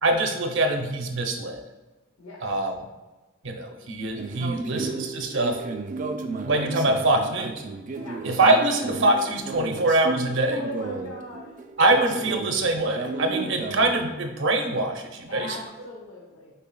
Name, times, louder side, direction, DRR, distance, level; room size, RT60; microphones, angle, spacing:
voice 1, 0.0-1.6 2.4-2.7 3.4-5.6 6.4-7.6 8.2-10.6 11.8-15.6, right 2 dB, 60° right, 3 dB, 0.7 m, -24 dB
sound 1, 4.2-14.1, right 3 dB, 40° right, 0.3 m, -34 dB
voice 2, 10.5-11.5 13.3-13.5 15.3-16.5, left 3 dB, 85° left, -5 dB, 0.9 m, -39 dB
5.5 x 4.0 x 2.3 m, 1.1 s
head